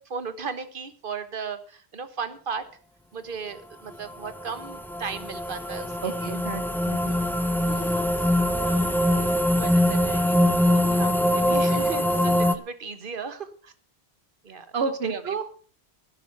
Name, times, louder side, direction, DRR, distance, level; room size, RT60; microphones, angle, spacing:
voice 1, 0.0-2.7 3.1-6.3 7.1-7.2 7.6-8.3 8.6-9.3 9.6-13.7 14.4-14.7 15.0-15.4, right 5 dB, 55° right, 11 dB, 1.5 m, -36 dB
sound 1, 4.1-12.6, left 1 dB, ahead, 0.7 m, -23 dB
voice 2, 6.0-7.1 8.6-8.7 14.7-15.4, right 5 dB, 75° right, 9 dB, 1.2 m, -30 dB
11.5 x 11.5 x 5.9 m, 0.42 s
omnidirectional pair, 1.1 m